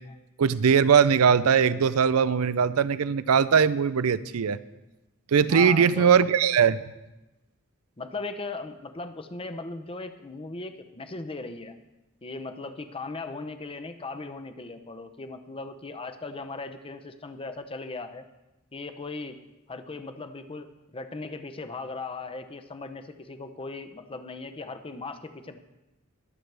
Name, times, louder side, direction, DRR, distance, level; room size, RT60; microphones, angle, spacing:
voice 1, 0.4-4.6 5.3-6.8, right 7 dB, 85° right, 16 dB, 0.5 m, -20 dB
voice 2, 5.5-6.1 8.0-11.7 12.2-18.2 18.7-19.4 19.7-25.6, left 3 dB, 25° left, 9 dB, 0.7 m, -38 dB
22.0 x 7.9 x 3.4 m, 1.0 s
head